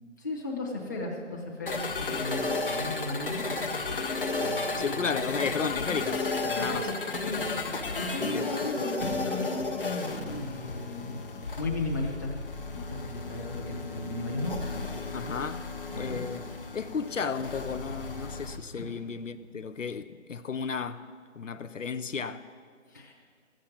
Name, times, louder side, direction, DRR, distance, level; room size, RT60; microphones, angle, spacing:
voice 1, 0.2-3.5 4.3-5.2 6.6-6.9 7.2-9.7 10.2-11.2 11.6-12.3 12.7-14.5 15.2-15.3 15.9-16.2 18.8-18.9 22.9-23.1, left 2 dB, 15° left, 1.0 m, -36 dB
sound 1, 1.7-18.6, left 3 dB, 45° left, 1.1 m, -33 dB
voice 2, 4.8-6.9 8.2-8.5 15.1-15.7 15.9-16.5 16.7-21.1 21.3-22.5, left 5 dB, 70° left, 0.7 m, -33 dB
14.5 x 7.6 x 9.4 m
figure-of-eight pair, 170°, 39 cm